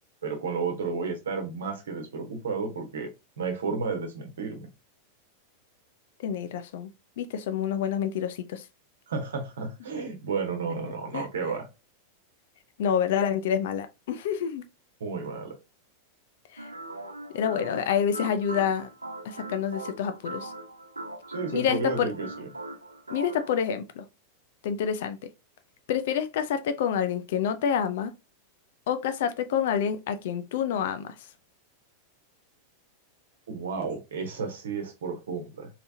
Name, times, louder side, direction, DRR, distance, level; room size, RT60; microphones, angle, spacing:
voice 1, 0.2-3.1 3.4-4.7 9.1-11.7 15.0-15.6 21.3-22.5 33.5-35.7, right 4 dB, 65° right, 1.0 m, -32 dB
voice 2, 6.2-6.9 7.2-8.6 11.1-11.3 12.8-14.6 16.5-16.7 17.3-18.9 19.2-20.5 21.5-22.1 23.1-24.1 24.6-25.2 25.9-28.1 28.9-31.1, left 8 dB, 55° left, 0.4 m, -28 dB
sound 1, 16.6-23.6, right 2 dB, 80° right, 0.8 m, -40 dB
3.3 x 2.9 x 2.7 m
figure-of-eight pair, 90°, 0 cm